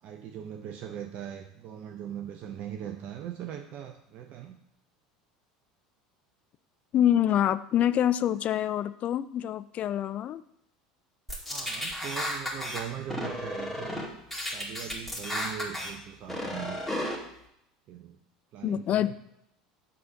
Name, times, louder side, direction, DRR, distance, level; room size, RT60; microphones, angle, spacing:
voice 1, 0.0-4.6 11.4-14.0 14.5-16.8 17.9-18.2 18.5-19.1, right 9 dB, 50° right, 4 dB, 0.6 m, -40 dB
voice 2, 6.9-10.4 18.6-19.1, left 11 dB, 40° left, 14 dB, 0.4 m, -26 dB
sound 1, 11.3-12.8 13.1-14.0 14.3-15.9 16.3-17.1, left 1 dB, 5° left, 2.3 m, -33 dB
7.5 x 4.1 x 5.7 m, 0.78 s
figure-of-eight pair, 75°, 3 cm